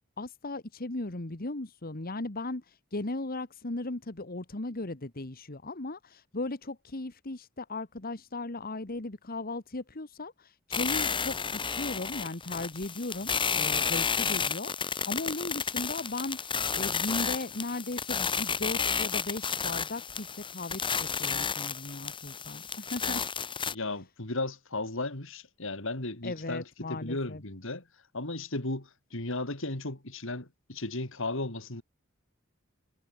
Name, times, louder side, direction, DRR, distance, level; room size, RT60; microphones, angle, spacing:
voice 1, 0.2-20.8 21.2-23.2 26.2-27.4, left 2 dB, 45° left, 1.6 m, -37 dB
sound 1, 10.7-23.7, left 6 dB, 25° left, 1.6 m, -32 dB
voice 2, 23.7-27.9 28.1-31.8, left 2 dB, 65° left, 3.4 m, -35 dB
head